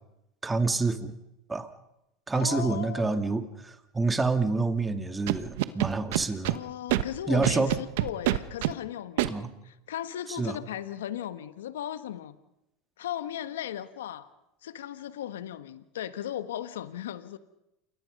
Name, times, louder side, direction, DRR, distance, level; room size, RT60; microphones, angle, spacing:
voice 1, 0.4-1.2 1.5-1.7 2.3-6.6 7.3-7.7 9.3-9.5 10.3-10.6, right 3 dB, 15° right, 8 dB, 2.5 m, -27 dB
voice 2, 2.3-3.2 6.5-12.3 13.0-14.3 14.6-17.4, left 11 dB, 85° left, 13 dB, 1.3 m, -37 dB
Scratching (performance technique), 5.3-6.6 6.9-7.0 7.4-8.7 9.2-9.3, right 17 dB, 70° right, 1.2 m, -26 dB
29.0 x 22.0 x 5.4 m, 0.87 s
hypercardioid pair, 95°, 0 cm